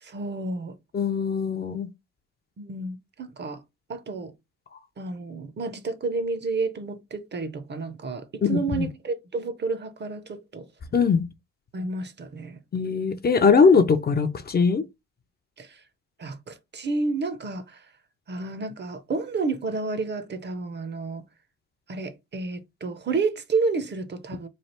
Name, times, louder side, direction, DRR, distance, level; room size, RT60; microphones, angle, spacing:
voice 1, 0.0-0.8 2.6-3.6 3.9-4.3 5.0-10.7 11.7-12.6 15.6-15.8 16.2-17.8 18.3-21.2 21.9-24.5, right 3 dB, 35° right, 0.6 m, -30 dB
voice 2, 0.9-1.9 8.4-8.9 10.9-11.2 12.7-14.8, left 5 dB, 35° left, 0.5 m, -21 dB
3.2 x 2.4 x 4.2 m
cardioid pair, 90°, 30 cm